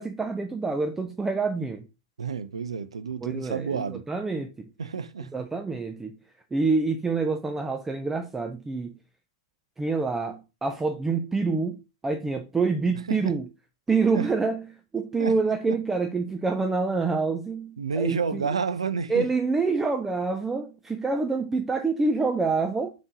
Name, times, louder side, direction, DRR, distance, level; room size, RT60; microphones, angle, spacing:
voice 1, 0.0-1.9 3.2-4.7 5.2-6.2 6.5-8.9 9.8-13.4 13.9-14.6 14.9-18.4 19.1-22.9, right 4 dB, 10° right, 0.4 m, -27 dB
voice 2, 2.2-4.1 4.8-5.3 13.1-13.4 14.1-14.3 15.2-15.4 15.7-15.8 17.8-19.3, right 5 dB, 75° right, 0.4 m, -30 dB
3.6 x 3.2 x 3.7 m
figure-of-eight pair, 100°, 3 cm